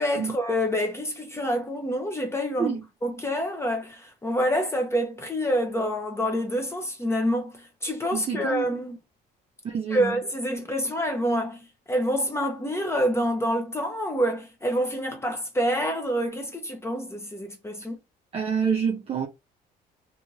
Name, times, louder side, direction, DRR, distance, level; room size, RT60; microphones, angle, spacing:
voice 1, 0.0-2.7 3.0-9.0 9.9-18.0, equal, 15° left, 0.7 m, -27 dB
voice 2, 8.1-8.7 9.6-10.2 18.3-19.3, right 6 dB, 35° right, 0.5 m, -27 dB
2.7 x 2.4 x 3.1 m
cardioid pair, 110°, 17 cm